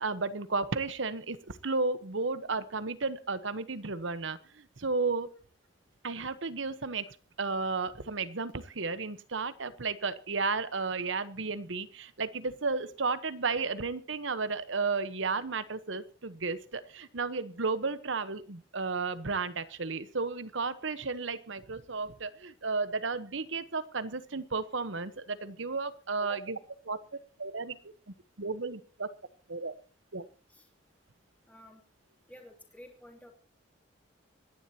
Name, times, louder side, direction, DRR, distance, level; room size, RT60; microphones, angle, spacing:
voice 1, 0.0-5.3 6.0-7.0 7.4-26.6 26.8-27.0 27.4-27.8 28.4-29.1 29.5-29.7 30.1-30.2, right 4 dB, 75° right, 13 dB, 1.1 m, -33 dB
voice 2, 31.5-31.8 32.3-33.3, left 1 dB, 5° left, 2 dB, 3.0 m, -50 dB
26.0 x 11.0 x 2.9 m, 0.40 s
head